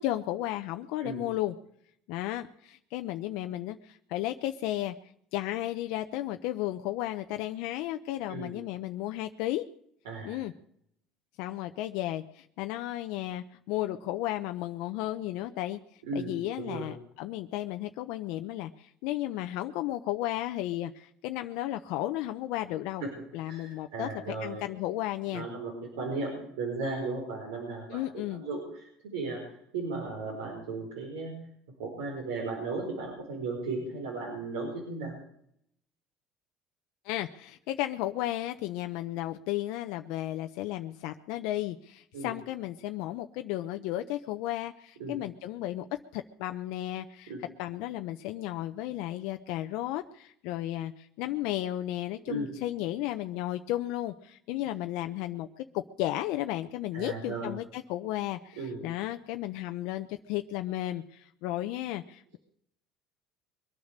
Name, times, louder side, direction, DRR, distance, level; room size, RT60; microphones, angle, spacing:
voice 1, 0.0-1.5 2.1-4.9 5.3-9.6 10.2-10.5 11.4-23.1 23.3-24.1 24.4-25.5 27.9-28.4 37.0-47.3 47.6-62.4, left 14 dB, 75° left, 7 dB, 0.7 m, -34 dB
voice 2, 10.0-10.4 16.0-16.9 23.0-23.1 23.5-24.7 25.3-29.4 29.7-31.3 31.8-35.2 42.1-42.3 45.0-45.2 47.3-47.4 52.3-52.5 56.9-57.6 58.6-58.8, right 3 dB, 90° right, -2 dB, 4.7 m, -36 dB
22.5 x 9.7 x 6.6 m, 0.71 s
supercardioid pair, 90°, 0 cm